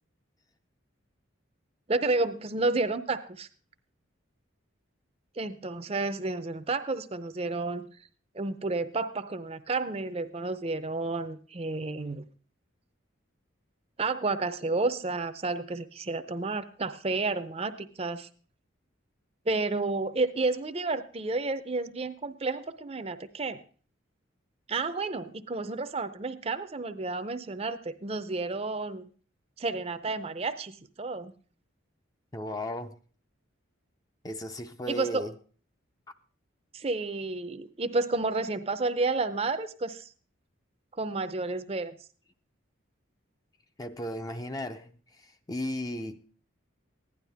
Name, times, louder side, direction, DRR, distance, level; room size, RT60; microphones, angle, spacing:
voice 1, 1.9-3.5 5.4-7.9 8.3-12.2 14.0-18.3 19.5-23.6 24.7-29.0 29.6-31.3 34.9-35.2 36.7-40.1 41.0-42.0, right 3 dB, 30° right, 0.5 m, -31 dB
voice 2, 32.3-33.0 34.2-35.3 43.8-46.2, left 1 dB, 20° left, 0.5 m, -35 dB
15.5 x 11.0 x 3.4 m
head